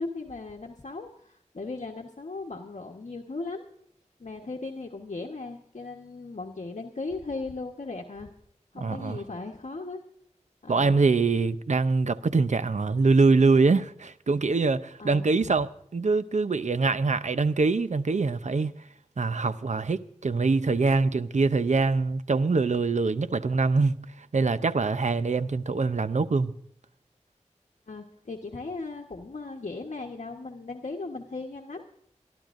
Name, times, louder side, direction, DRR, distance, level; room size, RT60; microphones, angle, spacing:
voice 1, 0.0-3.7 4.2-8.3 8.7-10.0 10.6-11.0 15.0-15.6 27.9-31.8, left 3 dB, 75° left, 1.2 m, -37 dB
voice 2, 8.8-9.2 10.7-18.7 19.2-26.5, right 4 dB, 70° right, 0.7 m, -24 dB
24.5 x 13.0 x 2.6 m
wide cardioid pair, 55°, 12 cm